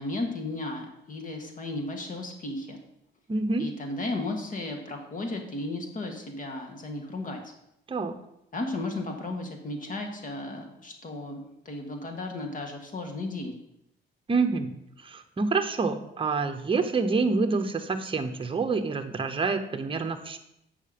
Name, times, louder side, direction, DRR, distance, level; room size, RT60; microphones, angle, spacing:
voice 1, 0.0-2.8 3.6-7.4 8.5-13.6, left 2 dB, 40° left, 3 dB, 1.6 m, -34 dB
voice 2, 3.3-3.7 7.9-8.1 14.3-20.4, right 4 dB, 25° right, 7 dB, 0.9 m, -27 dB
8.3 x 5.7 x 5.2 m, 0.80 s
cardioid pair, 90°, 20 cm